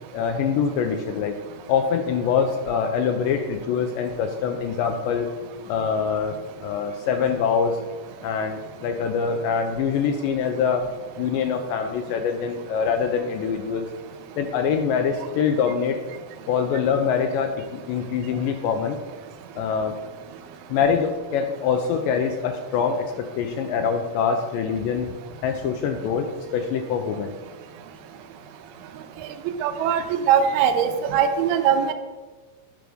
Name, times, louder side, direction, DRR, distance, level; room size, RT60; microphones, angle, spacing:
voice 1, 0.1-1.3 1.7-5.3 5.7-7.8 8.2-10.9 11.2-13.9 14.4-16.0 16.5-19.0 19.6-19.9 20.7-25.1 25.4-27.3, left 6 dB, 90° left, 5 dB, 1.9 m, -24 dB
voice 2, 29.6-31.9, right 8 dB, 90° right, 8 dB, 2.6 m, -21 dB
10.0 x 3.5 x 6.2 m, 1.3 s
omnidirectional pair, 4.5 m